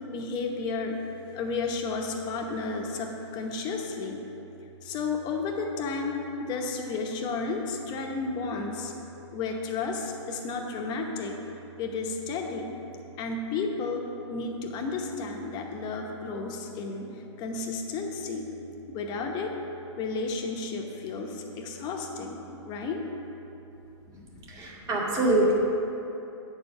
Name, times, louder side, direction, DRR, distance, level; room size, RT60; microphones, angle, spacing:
voice 1, 0.1-0.9 1.3-4.2 4.8-6.1 6.4-8.9 9.3-11.4 11.8-12.7 13.2-14.0 14.3-17.1 17.4-18.5 18.9-19.5 20.0-23.0 24.1-24.3, left 4 dB, 30° left, 2 dB, 1.0 m, -32 dB
voice 2, 24.5-25.5, right 1 dB, 20° right, -5 dB, 1.9 m, -24 dB
8.9 x 4.6 x 6.6 m, 3.0 s
hypercardioid pair, 140°, 15 cm